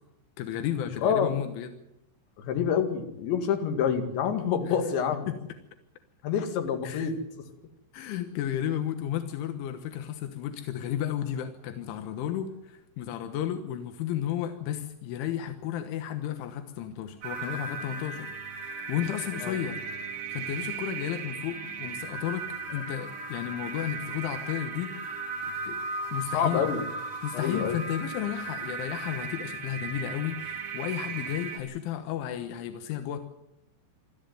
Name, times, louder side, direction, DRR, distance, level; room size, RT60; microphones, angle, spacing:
voice 1, 0.4-1.7 4.7-4.8 5.3-5.4 6.8-7.1 7.9-18.3 18.6-19.8 20.1-25.2 25.7-25.8 26.1-26.7 27.2-33.2, left 10 dB, 90° left, 7 dB, 3.7 m, -33 dB
voice 2, 1.0-1.3 2.5-5.3 6.2-7.1 19.4-19.6 26.3-26.9 27.3-27.8, left 7 dB, 70° left, 5 dB, 4.3 m, -27 dB
sound 1, 17.2-31.6, right 4 dB, 55° right, 4.1 m, -36 dB
23.5 x 14.0 x 9.2 m, 0.85 s
omnidirectional pair, 5.4 m